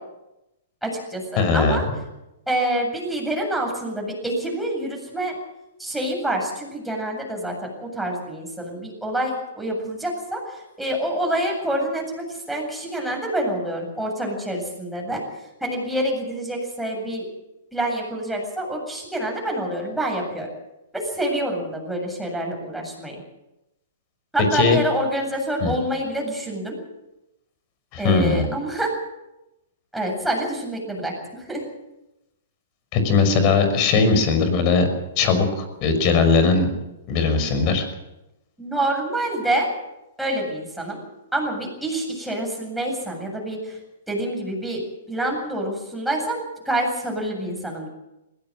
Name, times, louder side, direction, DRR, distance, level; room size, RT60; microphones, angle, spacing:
voice 1, 0.8-1.8 2.5-5.4 5.8-15.2 15.6-17.2 17.7-20.5 20.9-23.1 24.3-26.8 28.0-28.9 29.9-31.6 38.6-39.7 40.2-41.0 41.3-43.8 44.1-44.8 45.1-47.9, right 1 dB, ahead, 0 dB, 7.9 m, -27 dB
voice 2, 1.4-2.0 24.5-24.8 25.6-25.7 27.9-28.5 32.9-34.9 35.2-36.7 37.1-37.9, left 4 dB, 40° left, 8 dB, 5.9 m, -19 dB
20.5 x 17.5 x 7.8 m, 0.93 s
hypercardioid pair, 130°, 0 cm